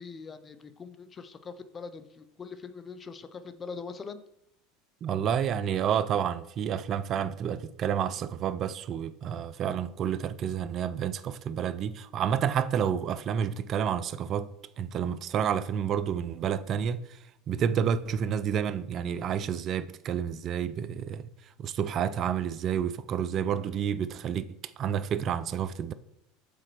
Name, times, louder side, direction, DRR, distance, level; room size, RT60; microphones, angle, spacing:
voice 1, 0.0-4.2, left 5 dB, 30° left, 0.6 m, -42 dB
voice 2, 5.0-14.5 14.8-17.2 17.5-21.3 21.6-25.9, right 8 dB, 45° right, 0.3 m, -30 dB
5.1 x 4.2 x 4.5 m
hypercardioid pair, 85°, 0 cm